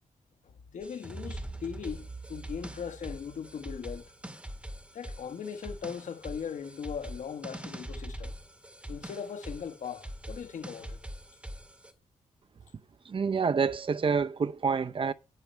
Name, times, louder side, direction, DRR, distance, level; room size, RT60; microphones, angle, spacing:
voice 1, 0.7-4.0 4.9-8.3 8.9-11.0, left 7 dB, 70° left, 1.3 m, -39 dB
sound 1, 0.8-11.9, right 1 dB, 10° right, 1.9 m, -43 dB
voice 2, 13.1-15.1, right 5 dB, 40° right, 0.7 m, -27 dB
10.5 x 8.4 x 4.5 m
wide cardioid pair, 120°, 13 cm